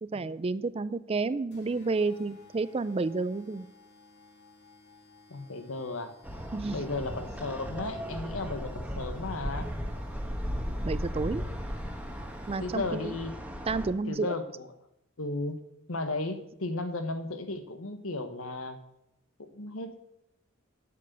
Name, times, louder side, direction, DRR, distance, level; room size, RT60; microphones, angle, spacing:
voice 1, 0.0-3.7 6.5-6.8 10.8-11.4 12.5-13.1 13.7-14.3, right 3 dB, 30° right, 16 dB, 0.4 m, -30 dB
sound 1, 1.5-12.9, left 3 dB, 55° left, 2.1 m, -56 dB
voice 2, 5.3-6.1 6.7-9.7 12.6-13.4 14.1-14.7 15.2-15.6 15.9-18.8 19.4-20.1, left 2 dB, 85° left, 8 dB, 1.3 m, -35 dB
sound 2, 6.2-13.9, equal, 5° right, 1.2 m, -36 dB
9.1 x 8.3 x 6.7 m, 0.81 s
head